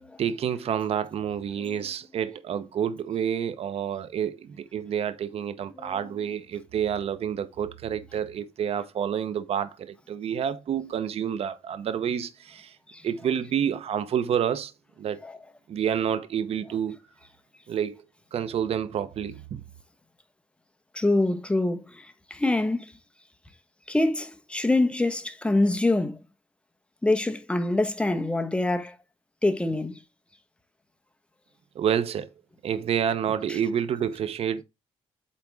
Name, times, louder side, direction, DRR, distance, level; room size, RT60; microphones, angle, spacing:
voice 1, 0.2-12.8 13.0-14.7 15.0-15.2 15.7-17.0 17.7-18.0 18.3-19.6 31.7-32.3 32.6-34.6, right 8 dB, 65° right, 0.9 m, -28 dB
voice 2, 5.7-6.1 12.9-13.1 15.2-15.4 20.9-23.0 23.9-26.2 27.0-29.0 29.4-30.0 33.5-33.6, left 2 dB, 10° left, 1.2 m, -25 dB
8.6 x 3.6 x 4.8 m
cardioid pair, 100°, 11 cm